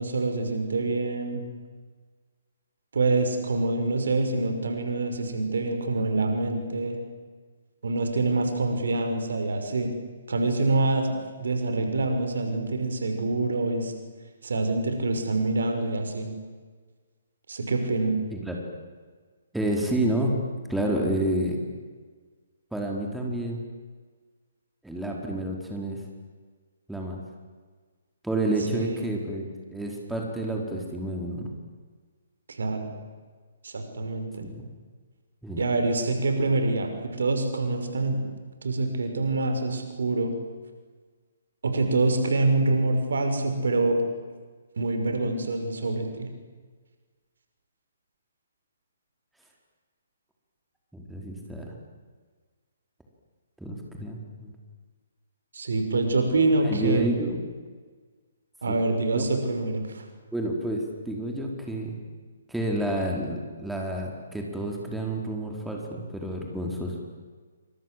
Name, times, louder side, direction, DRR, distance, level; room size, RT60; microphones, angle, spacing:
voice 1, 0.0-1.4 2.9-7.0 7.8-9.9 10.3-13.9 14.4-16.3 17.5-18.2 28.7-29.0 32.5-32.9 33.6-34.4 35.6-38.2 38.6-40.3 41.6-44.0 44.8-46.3 55.5-57.1 58.6-60.0, right 2 dB, 65° right, 6 dB, 5.8 m, -26 dB
voice 2, 19.5-20.4 20.7-21.6 22.7-23.6 24.8-26.0 26.9-27.2 28.2-31.5 34.4-34.7 35.4-35.6 50.9-51.7 53.6-54.5 56.6-57.4 58.7-58.8 59.1-59.2 60.3-61.9 62.5-67.0, right 1 dB, 5° right, 0 dB, 4.8 m, -29 dB
28.0 x 27.0 x 7.9 m, 1.5 s
figure-of-eight pair, 130°, 0 cm